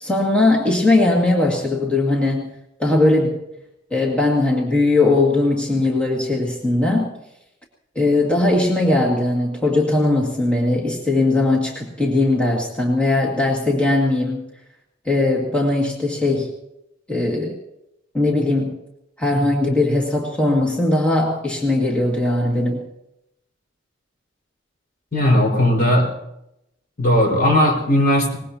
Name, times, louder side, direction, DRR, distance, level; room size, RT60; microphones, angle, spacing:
voice 1, 0.0-2.5 2.8-3.4 3.9-7.1 8.0-14.4 15.1-16.5 17.1-17.6 18.1-18.7 19.2-22.8, left 2 dB, 5° left, -3 dB, 2.2 m, -19 dB
voice 2, 25.1-26.1 27.0-28.4, left 1 dB, 50° left, 0 dB, 4.9 m, -17 dB
23.5 x 20.5 x 2.9 m, 0.85 s
head